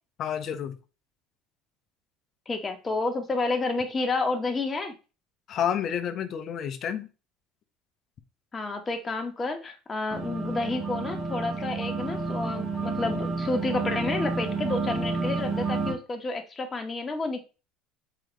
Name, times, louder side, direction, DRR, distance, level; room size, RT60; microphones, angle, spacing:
voice 1, 0.2-0.8 5.5-7.1, left 8 dB, 50° left, 1.1 m, -29 dB
voice 2, 2.5-4.9 8.5-17.4, left 3 dB, 25° left, 1.8 m, -30 dB
sound 1, 10.1-15.9, right 3 dB, 30° right, 3.2 m, -30 dB
7.5 x 5.1 x 3.2 m
supercardioid pair, 85°, 0 cm